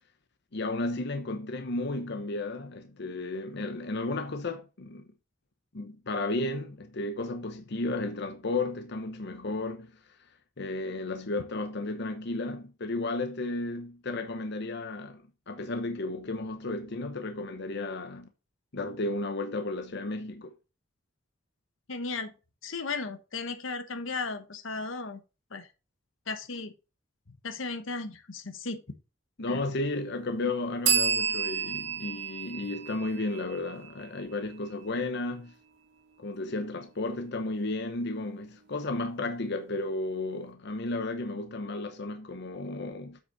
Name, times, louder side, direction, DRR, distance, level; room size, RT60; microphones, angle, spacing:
voice 1, 0.5-5.0 5.7-9.9 10.6-18.3 18.7-20.5 29.4-35.5 36.2-43.2, left 2 dB, 60° left, 0.9 m, -33 dB
voice 2, 21.9-22.3 22.6-25.2 25.5-25.7 26.3-26.7 27.3-28.8 29.5-29.6, left 4 dB, 85° left, 1.1 m, -35 dB
sound 1, 30.8-34.4, right 7 dB, 65° right, 2.7 m, -30 dB
8.3 x 5.9 x 4.0 m
head